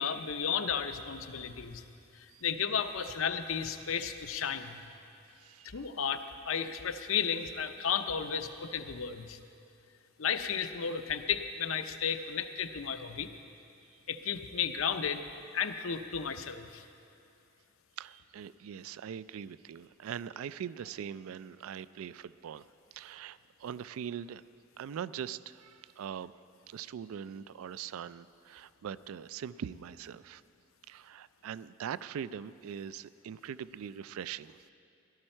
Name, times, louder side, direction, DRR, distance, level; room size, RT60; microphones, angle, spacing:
voice 1, 0.0-1.8 2.1-4.8 5.6-9.4 10.2-13.3 14.1-15.2 15.5-16.8, left 7 dB, 75° left, 9 dB, 0.6 m, -33 dB
voice 2, 5.3-5.8 13.9-14.0 18.0-24.4 24.8-26.4 26.7-30.4 30.9-34.7, right 8 dB, 85° right, 17 dB, 0.3 m, -42 dB
17.5 x 12.5 x 4.4 m, 2.6 s
head